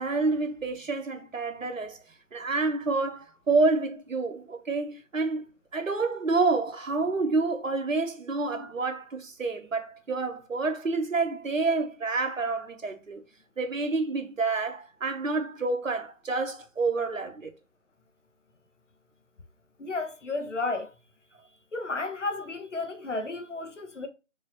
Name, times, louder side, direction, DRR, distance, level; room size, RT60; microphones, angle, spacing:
voice 1, 0.0-2.0 2.3-5.4 5.7-13.2 13.6-17.5, right 3 dB, 80° right, 0.9 m, -28 dB
voice 2, 19.8-20.9 21.7-24.1, left 3 dB, 65° left, 1.0 m, -32 dB
4.8 x 2.8 x 2.8 m
figure-of-eight pair, 155°, 39 cm